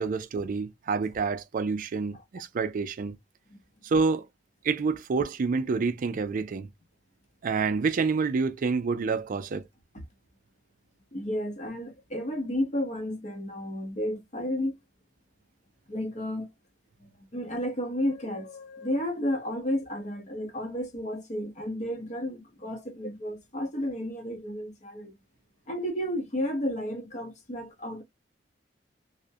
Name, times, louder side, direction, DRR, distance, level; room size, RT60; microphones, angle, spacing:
voice 1, 0.0-3.2 3.8-4.3 4.6-6.7 7.4-9.7, right 4 dB, 45° right, 0.4 m, -28 dB
voice 2, 11.1-14.7 15.9-16.5 17.3-25.1 25.7-28.0, left 1 dB, 40° left, 0.7 m, -32 dB
2.3 x 2.1 x 2.5 m
head